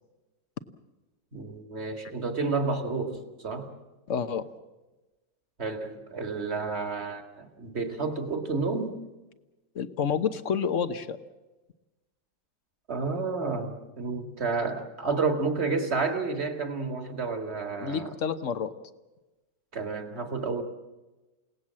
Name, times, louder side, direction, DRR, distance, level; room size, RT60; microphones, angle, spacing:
voice 1, 1.3-3.7 5.6-9.0 12.9-18.1 19.7-20.6, right 4 dB, 40° right, 5 dB, 2.3 m, -30 dB
voice 2, 4.1-4.4 9.7-11.2 17.8-18.7, left 7 dB, 50° left, 11 dB, 1.3 m, -29 dB
29.0 x 18.5 x 7.6 m, 1.1 s
omnidirectional pair, 1.8 m